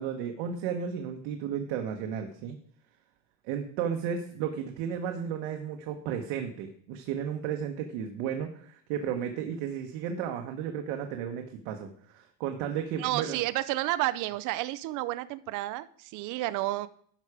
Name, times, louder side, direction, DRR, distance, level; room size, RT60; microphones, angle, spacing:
voice 1, 0.0-2.6 3.4-13.4, right 8 dB, 85° right, 4 dB, 1.2 m, -33 dB
voice 2, 13.0-16.9, right 17 dB, 55° right, 15 dB, 0.6 m, -31 dB
11.5 x 6.1 x 4.9 m, 0.62 s
cardioid pair, 155°, 37 cm